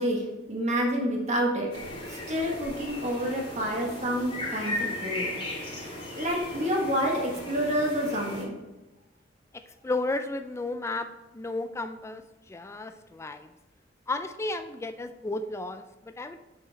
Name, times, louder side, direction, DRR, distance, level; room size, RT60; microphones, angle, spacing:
voice 1, 0.0-1.7 2.1-5.3 5.7-8.5, equal, 40° right, -1 dB, 1.5 m, -28 dB
sound 1, 1.7-8.4, left 1 dB, 30° left, 2.4 m, -36 dB
voice 2, 9.5-11.1 11.3-13.5 14.1-16.4, left 2 dB, 15° left, 8 dB, 0.3 m, -33 dB
5.7 x 5.7 x 4.0 m, 1.0 s
head